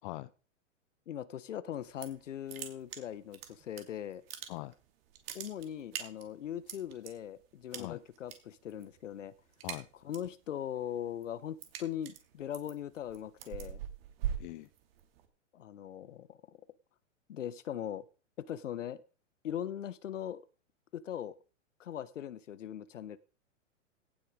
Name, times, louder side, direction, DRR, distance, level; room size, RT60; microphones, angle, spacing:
voice 1, 1.1-4.2 5.3-9.3 10.0-13.8 15.5-16.4 17.3-18.0 18.4-19.0 19.4-20.4 20.9-21.3 21.8-23.2, left 10 dB, 80° left, 1.1 m, -40 dB
sound 1, 1.7-2.2 2.5-3.8 4.1-4.8 5.1-7.1 7.7-8.4 8.7-9.0 9.3-10.3 10.7-15.3, right 10 dB, 50° right, 2.7 m, -41 dB
voice 2, 14.4-14.7, left 19 dB, 40° left, 0.7 m, -42 dB
17.0 x 6.5 x 5.0 m
hypercardioid pair, 125°, 37 cm